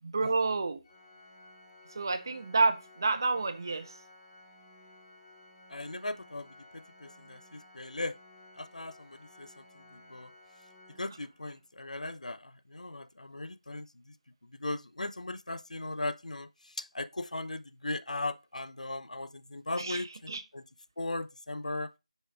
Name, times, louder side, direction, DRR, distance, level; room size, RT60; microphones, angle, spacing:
voice 1, 0.0-0.8 2.0-3.9 19.7-20.4, right 3 dB, 30° right, 0.4 m, -29 dB
Organ, 0.8-11.7, left 1 dB, 25° left, 1.0 m, -56 dB
voice 2, 5.7-6.5 6.7-8.1 8.6-9.8 10.1-10.3 11.0-13.9 14.6-16.5 16.8-20.6 21.0-21.9, left 2 dB, 80° left, 0.3 m, -38 dB
5.2 x 2.3 x 3.3 m
figure-of-eight pair, 165°, 4 cm